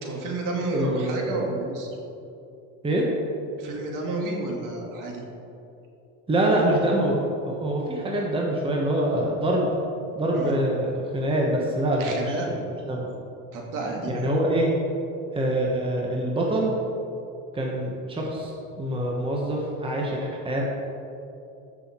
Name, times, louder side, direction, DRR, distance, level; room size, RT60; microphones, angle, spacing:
voice 1, 0.0-1.9 3.6-5.2 10.3-10.5 12.0-12.5 13.5-14.4, right 2 dB, 50° right, 0 dB, 2.2 m, -31 dB
voice 2, 0.7-1.5 2.8-3.0 6.3-7.2 7.4-9.7 10.1-12.6 12.9-13.1 14.1-14.7 15.3-16.7 17.5-18.5 18.8-20.6, right 1 dB, 15° right, -2 dB, 1.3 m, -25 dB
13.5 x 6.3 x 4.5 m, 2.7 s
supercardioid pair, 130°, 39 cm